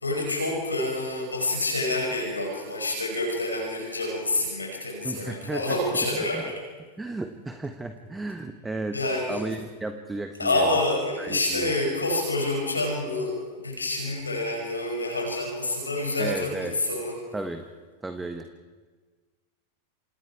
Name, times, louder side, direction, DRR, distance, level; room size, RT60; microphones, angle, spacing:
voice 1, 0.0-6.6 8.9-9.4 10.4-17.2, left 2 dB, 80° left, 0 dB, 5.6 m, -27 dB
voice 2, 5.0-5.8 6.3-6.4 7.0-9.0 9.3-10.8 11.2-11.7 16.2-16.8 17.3-17.7 18.0-18.5, right 2 dB, 10° right, 7 dB, 1.4 m, -34 dB
28.5 x 27.5 x 4.8 m, 1.4 s
figure-of-eight pair, 90°, 0 cm